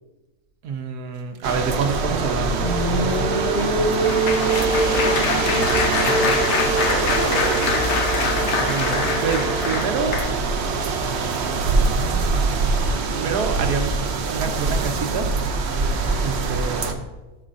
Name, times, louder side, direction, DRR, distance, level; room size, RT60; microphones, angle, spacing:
voice 1, 0.6-2.7 8.1-10.2 10.9-12.3 13.1-14.0 14.3-17.0, right 5 dB, 85° right, 6 dB, 1.4 m, -28 dB
sound 1, 1.4-16.9, right 4 dB, 55° right, 0.8 m, -24 dB
Applause, 2.3-10.6 11.3-11.5 11.8-12.0, left 5 dB, 55° left, 0.9 m, -26 dB
sound 2, 2.6-10.0, right 2 dB, 80° left, 2.3 m, -26 dB
voice 2, 4.3-6.3 6.8-7.8 16.0-16.2, left 1 dB, 35° left, -3 dB, 1.7 m, -33 dB
12.5 x 7.2 x 2.6 m, 1.1 s
omnidirectional pair, 1.6 m